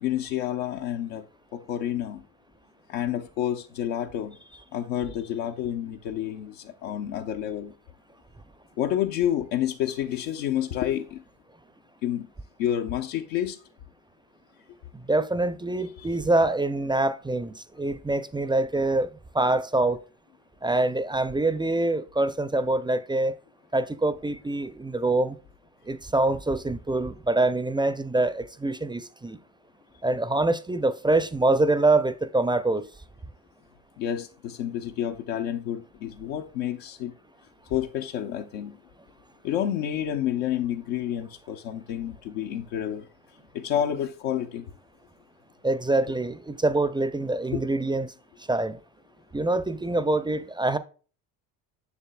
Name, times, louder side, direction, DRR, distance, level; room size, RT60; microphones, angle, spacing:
voice 1, 0.0-1.2 1.5-2.2 2.9-4.4 4.7-7.7 8.8-11.2 12.0-12.3 12.6-13.6 34.0-37.1 37.7-38.8 39.4-43.0 43.5-44.6 47.5-47.6, left 10 dB, 90° left, 0.8 m, -29 dB
voice 2, 15.0-20.0 20.6-23.3 23.7-25.4 25.9-29.4 30.0-32.9 45.6-48.1 48.5-48.8 49.3-50.8, right 2 dB, 10° right, 0.4 m, -25 dB
7.1 x 6.8 x 2.2 m
supercardioid pair, 80°, 48 cm